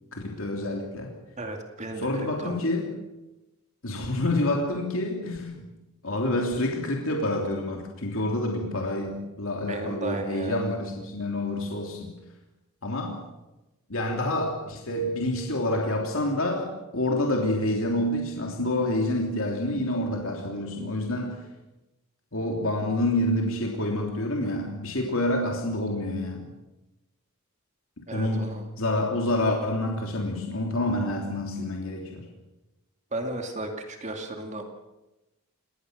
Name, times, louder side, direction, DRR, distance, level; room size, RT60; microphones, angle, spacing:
voice 1, 0.1-1.1 2.0-2.9 3.8-5.7 6.0-12.1 12.8-13.2 13.9-21.4 22.3-26.5 28.0-32.3, left 1 dB, 60° left, 1 dB, 3.2 m, -28 dB
voice 2, 1.4-2.1 2.4-2.5 9.7-10.7 28.1-28.6 33.1-34.6, right 2 dB, 30° right, 4 dB, 2.5 m, -34 dB
30.0 x 18.5 x 6.7 m, 1.0 s
head